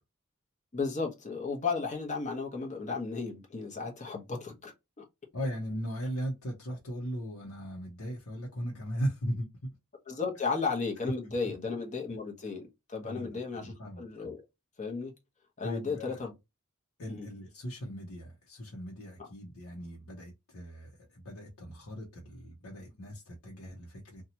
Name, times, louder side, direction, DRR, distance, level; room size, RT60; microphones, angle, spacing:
voice 1, 0.7-5.0 10.1-14.4 14.8-15.1 15.6-16.3 17.1-17.3, left 4 dB, 35° left, 0.9 m, -34 dB
voice 2, 5.3-9.7 11.4-11.5 13.0-14.3 15.6-16.2 17.0-24.2, equal, 80° left, 0.8 m, -38 dB
2.8 x 2.3 x 2.8 m
head